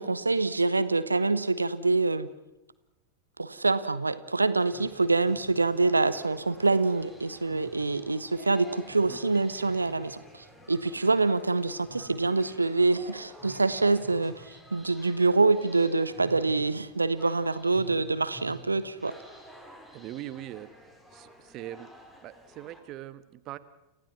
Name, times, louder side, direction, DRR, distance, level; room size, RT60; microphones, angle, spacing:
voice 1, 0.0-2.3 3.4-19.1, right 3 dB, 80° right, 14 dB, 1.0 m, -26 dB
sound 1, 4.6-22.8, equal, 10° left, 4.5 m, -51 dB
voice 2, 19.9-20.7 21.1-21.9 22.2-23.6, right 13 dB, 35° right, 14 dB, 1.3 m, -41 dB
29.5 x 15.5 x 6.1 m, 0.96 s
figure-of-eight pair, 90°, 0 cm